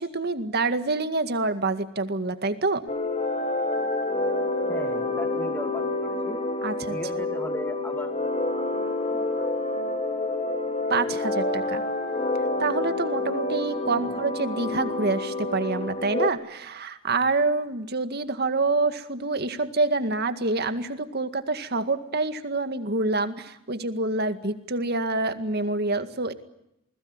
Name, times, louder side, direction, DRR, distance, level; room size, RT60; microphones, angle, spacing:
voice 1, 0.0-2.8 6.6-7.0 10.9-11.8 12.6-26.3, right 3 dB, 50° right, 9 dB, 2.0 m, -27 dB
sound 1, 2.9-16.3, left 2 dB, 30° left, 2.9 m, -28 dB
voice 2, 4.7-6.4 6.9-9.5 14.0-14.2, equal, 10° left, 6 dB, 2.2 m, -38 dB
29.0 x 20.5 x 9.7 m, 0.85 s
head